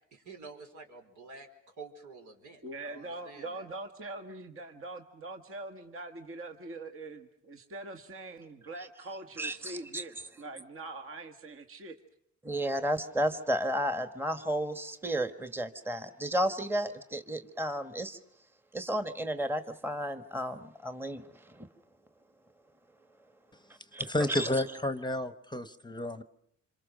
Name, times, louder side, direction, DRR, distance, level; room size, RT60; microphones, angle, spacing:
voice 1, 0.1-1.5 1.8-3.6, right 4 dB, 75° right, 4.5 m, -49 dB
voice 2, 2.6-12.0, right 2 dB, 45° right, 1.7 m, -43 dB
voice 3, 9.4-10.0 12.4-18.2 18.7-21.7 23.9-24.5, equal, 5° right, 1.4 m, -33 dB
voice 4, 24.1-26.2, left 1 dB, 15° left, 1.0 m, -31 dB
27.0 x 24.5 x 6.5 m
cardioid pair, 90°, 30 cm